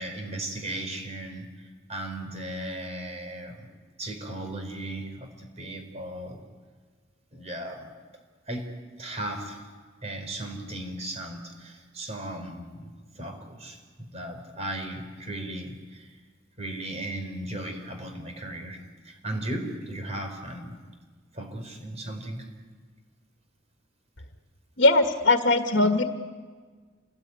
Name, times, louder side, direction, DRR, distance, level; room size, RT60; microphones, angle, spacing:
voice 1, 0.0-6.4 7.3-7.9 8.5-8.7 9.0-9.6 10.0-16.1 16.6-20.8 21.3-22.5, right 1 dB, 35° right, 4 dB, 4.7 m, -36 dB
voice 2, 24.8-26.0, left 2 dB, 60° left, 6 dB, 1.6 m, -20 dB
28.5 x 20.0 x 9.7 m, 1.5 s
head